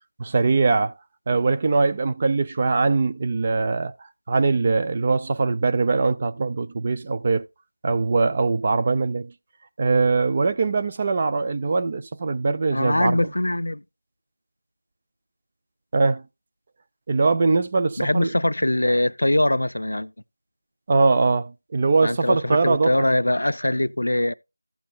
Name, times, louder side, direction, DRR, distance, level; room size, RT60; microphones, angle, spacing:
voice 1, 0.2-0.9 1.3-3.9 4.3-7.4 7.8-9.3 9.8-13.2 15.9-16.2 17.1-18.3 20.9-22.9, right 4 dB, 20° right, 0.4 m, -21 dB
voice 2, 12.7-13.8 18.0-20.1 22.0-24.3, left 1 dB, 70° left, 0.5 m, -22 dB
15.0 x 7.1 x 2.3 m
figure-of-eight pair, 175°, 0 cm